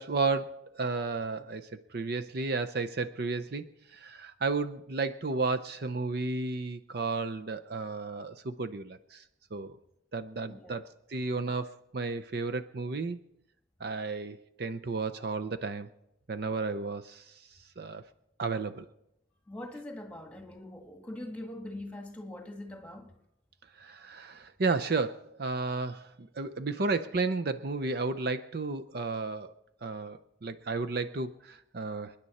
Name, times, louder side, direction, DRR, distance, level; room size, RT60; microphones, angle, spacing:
voice 1, 0.0-9.2 9.5-9.8 10.1-13.2 13.8-15.9 16.3-17.4 17.8-18.0 18.4-18.9 23.8-29.5 29.8-32.1, right 3 dB, 50° right, 0.5 m, -33 dB
voice 2, 19.5-23.1, left 1 dB, 5° left, 1.6 m, -42 dB
29.0 x 10.0 x 4.2 m
head